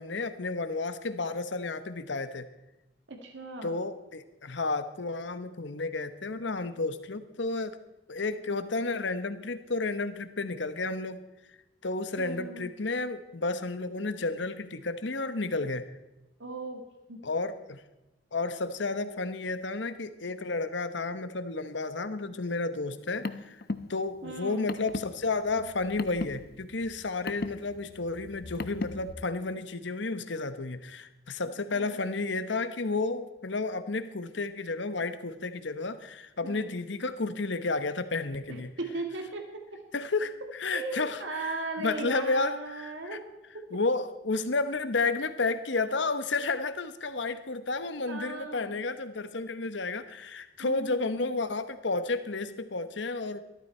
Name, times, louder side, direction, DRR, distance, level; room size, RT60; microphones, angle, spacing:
voice 1, 0.0-2.5 3.6-7.8 8.1-11.2 11.8-15.9 17.2-17.8 18.3-23.6 23.9-38.7 39.9-43.2 43.7-53.4, left 3 dB, 70° left, 12 dB, 1.0 m, -32 dB
voice 2, 3.1-3.8 12.2-12.7 16.4-17.2 24.2-24.6 31.7-32.0 36.4-36.7 38.5-39.8 40.7-43.2 48.1-48.7 50.6-51.1, right 2 dB, 75° right, 4 dB, 1.8 m, -37 dB
Car, 22.9-29.1, left 3 dB, 50° left, 0.6 m, -38 dB
14.5 x 13.0 x 4.4 m, 1.0 s
head